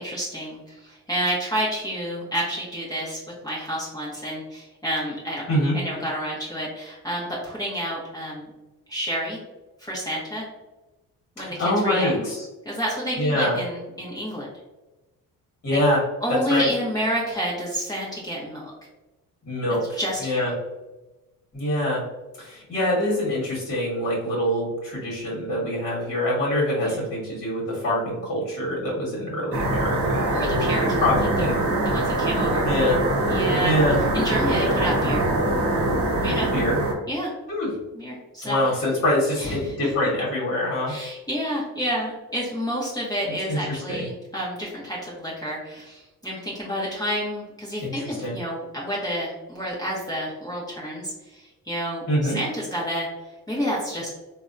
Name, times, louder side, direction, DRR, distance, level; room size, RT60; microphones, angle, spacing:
voice 1, 0.0-5.4 5.7-8.5 8.9-9.4 9.8-10.5 11.4-12.2 12.6-14.5 16.2-18.7 19.9-20.4 26.8-27.0 30.3-31.1 31.4-32.7 33.3-33.7 34.1-35.3 36.2-36.5 37.1-37.3 37.9-38.6 39.4-39.9 40.9-53.1 53.5-54.1, equal, 10° left, -6 dB, 0.9 m, -29 dB
voice 2, 11.4-12.5 13.2-13.6 15.6-16.0 16.3-16.7 19.5-20.5 21.5-22.0 22.4-30.3 31.0-31.5 32.6-33.0 33.6-34.0 36.5-36.8 37.5-37.7 38.4-40.9 43.5-44.0 47.8-48.3 52.1-52.4, left 1 dB, 40° left, -4 dB, 1.3 m, -24 dB
sound 1, 29.5-36.9, right 1 dB, 40° right, 1.0 m, -23 dB
3.4 x 2.2 x 2.5 m, 1.1 s
cardioid pair, 75°, 36 cm